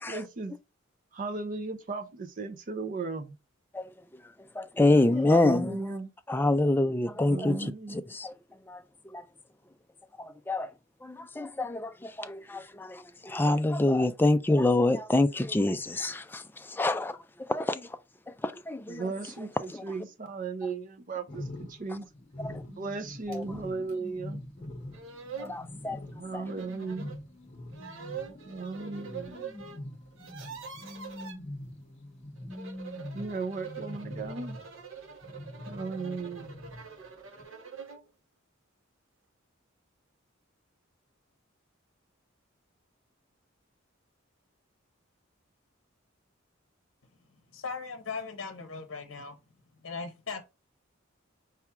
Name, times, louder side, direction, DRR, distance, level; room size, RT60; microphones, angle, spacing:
voice 1, 0.1-0.5 1.1-3.4 5.3-6.1 7.2-8.0 18.9-22.1 22.7-24.4 26.1-27.2 28.5-29.4 33.1-34.6 35.7-36.5, right 4 dB, 40° right, 0.5 m, -36 dB
voice 2, 4.6-5.8 6.3-8.3 8.7-9.2 10.2-10.7 11.0-18.0 18.4-19.1 19.7-19.8 22.4-22.6 23.3-23.4 25.4-26.0 26.3-26.4, left 2 dB, 10° left, 0.3 m, -27 dB
sound 1, 21.3-34.9 35.2-37.1 37.4-37.5, left 1 dB, 35° left, 0.9 m, -44 dB
sound 2, 23.3-23.4 23.9-24.0 24.6-24.7 24.9-25.6 26.5-27.2 27.7-29.8 30.1-31.4 32.4-38.1, right 6 dB, 80° right, 0.9 m, -44 dB
voice 3, 47.5-49.4 49.8-50.4, left 4 dB, 75° left, 0.7 m, -38 dB
4.8 x 2.3 x 4.3 m
head